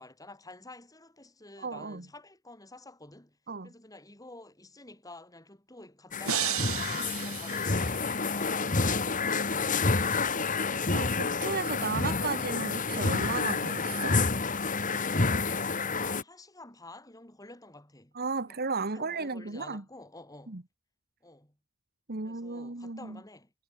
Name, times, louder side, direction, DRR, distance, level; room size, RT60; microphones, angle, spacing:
voice 1, 0.0-3.4 3.6-10.5 15.0-18.2 18.4-18.6 18.9-20.6 21.2-21.6 22.2-23.5, left 2 dB, 15° left, 4.8 m, -50 dB
voice 2, 1.6-2.0 3.5-3.7 10.9-14.2 18.1-19.8 20.5-20.6 22.1-23.2, right 4 dB, 45° right, 1.4 m, -34 dB
sound 1, 6.1-16.2, left 4 dB, 35° left, 1.7 m, -29 dB
sound 2, 6.2-8.4, right 10 dB, 70° right, 2.8 m, -34 dB
head